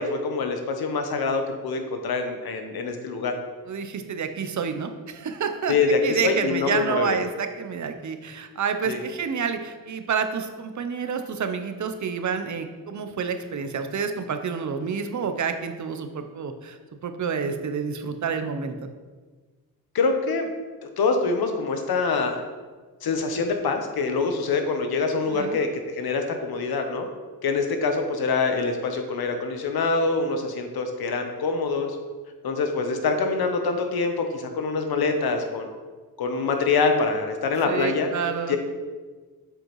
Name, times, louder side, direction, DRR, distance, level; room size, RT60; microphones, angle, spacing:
voice 1, 0.0-3.3 5.7-7.2 8.8-9.0 19.9-20.5 20.8-22.4 23.0-27.1 27.4-32.0 32.4-35.7 36.2-38.1 38.5-38.6, left 4 dB, 75° left, 5 dB, 0.9 m, -25 dB
voice 2, 3.7-5.7 6.0-18.8 25.3-25.6 37.6-38.6, right 6 dB, 50° right, 7 dB, 0.7 m, -29 dB
7.4 x 5.2 x 3.1 m, 1.4 s
cardioid pair, 80°, 37 cm